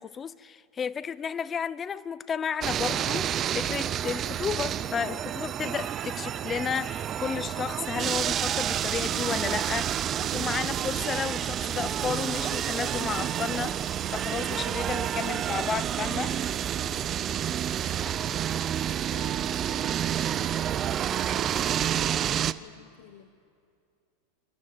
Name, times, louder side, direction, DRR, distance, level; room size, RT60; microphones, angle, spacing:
voice 1, 0.0-16.4, left 7 dB, 25° left, 0.5 m, -33 dB
sound 1, 2.6-22.5, right 10 dB, 30° right, 0.5 m, -29 dB
voice 2, 16.8-20.7 21.0-23.3, left 10 dB, 70° left, 1.1 m, -52 dB
27.5 x 12.0 x 7.7 m
supercardioid pair, 130°, 0 cm